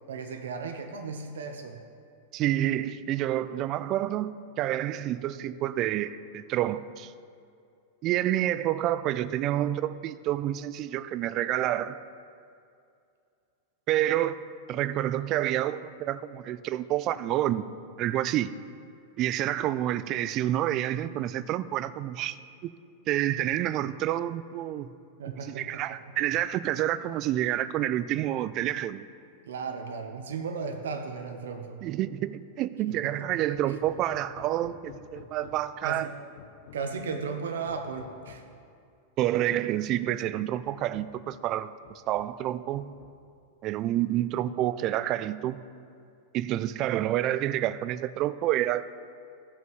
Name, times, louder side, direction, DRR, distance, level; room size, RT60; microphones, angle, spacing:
voice 1, 0.1-1.8 25.2-25.8 29.5-31.9 33.7-33.8 35.8-36.1 36.7-38.4, right 5 dB, 90° right, 0.7 m, -35 dB
voice 2, 2.3-7.1 8.0-12.0 13.9-14.4 14.7-17.7 18.0-18.5 19.2-22.4 23.1-24.9 25.5-29.1 31.8-36.1 39.2-42.9 43.6-45.6 46.3-48.9, right 13 dB, 40° right, 0.3 m, -28 dB
Hammer, 33.5-35.8 36.4-37.2 37.7-38.6 39.6-39.7 40.1-40.2 40.6-41.3 41.8-42.5 42.7-43.4, left 7 dB, 75° left, 0.7 m, -51 dB
15.0 x 5.6 x 3.1 m
hypercardioid pair, 130°, 0 cm